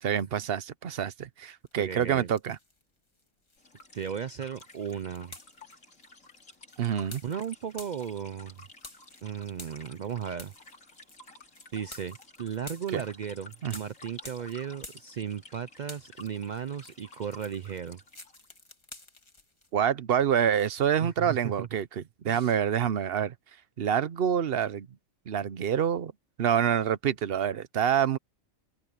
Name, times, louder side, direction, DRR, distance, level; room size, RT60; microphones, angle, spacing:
voice 1, 0.0-2.6 6.8-7.2 12.9-13.0 13.6-13.8 19.7-23.3 23.8-24.9 25.3-26.1 26.4-28.2, right 8 dB, 50° right, 0.8 m, -27 dB
sound 1, 1.7-2.8 3.2-15.5 15.8-19.7, left 2 dB, 20° left, 1.7 m, -51 dB
voice 2, 1.8-2.3 3.9-5.3 7.2-8.6 9.2-10.5 11.7-18.0 21.0-21.7 22.3-22.5, right 8 dB, 80° right, 0.4 m, -36 dB
sound 2, 3.6-18.6, left 2 dB, 70° left, 5.0 m, -52 dB
open air
omnidirectional pair, 1.4 m